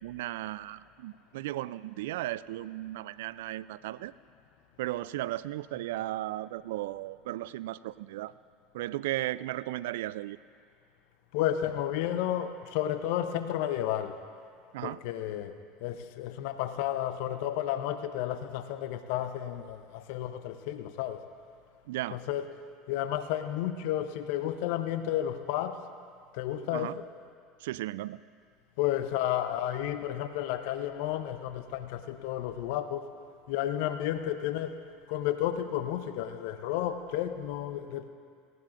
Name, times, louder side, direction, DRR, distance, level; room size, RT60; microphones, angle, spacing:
voice 1, 0.0-4.1 4.8-8.3 8.7-10.4 14.7-15.0 21.9-22.2 26.7-27.0 27.6-28.2, right 15 dB, 75° right, 18 dB, 0.3 m, -35 dB
voice 2, 11.3-14.2 14.8-21.2 22.1-22.5 22.9-25.8 26.3-27.0 28.8-33.0 33.5-34.8 35.1-38.1, left 11 dB, 65° left, 10 dB, 0.7 m, -32 dB
18.5 x 17.5 x 2.5 m, 2.2 s
hypercardioid pair, 80°, 0 cm